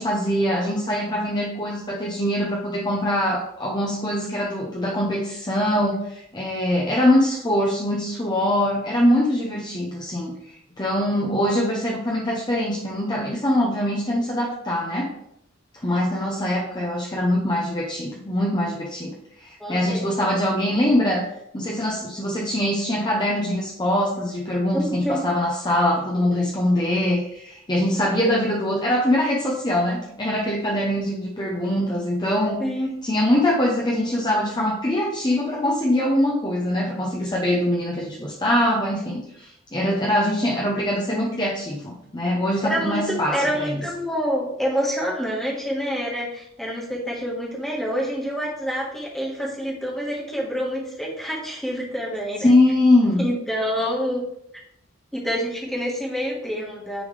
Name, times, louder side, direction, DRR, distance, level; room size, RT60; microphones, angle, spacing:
voice 1, 0.0-10.3 10.8-15.1 15.8-21.3 21.5-32.6 33.0-43.8 52.4-53.2, left 1 dB, 20° left, -2 dB, 0.8 m, -23 dB
voice 2, 19.6-20.3 24.7-25.3 32.6-32.9 42.6-52.5 53.2-54.2 55.1-57.0, equal, ahead, -4 dB, 1.5 m, -27 dB
9.8 x 3.5 x 3.3 m, 0.76 s
head